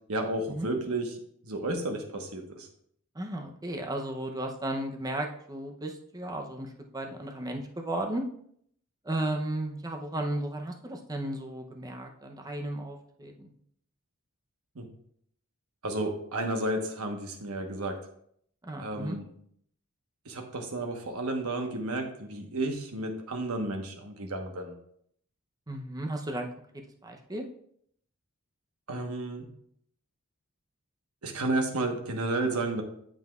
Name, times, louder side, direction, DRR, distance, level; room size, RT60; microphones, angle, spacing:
voice 1, 0.1-1.1 1.4-2.7 14.7-14.9 15.8-18.0 18.8-19.2 20.2-24.8 28.9-29.5 31.2-32.8, right 2 dB, 75° right, 3 dB, 1.2 m, -32 dB
voice 2, 3.1-8.2 9.0-13.5 18.6-19.2 25.7-26.5 27.0-27.5, right 1 dB, 15° right, 3 dB, 0.6 m, -34 dB
9.2 x 7.4 x 2.4 m, 0.68 s
head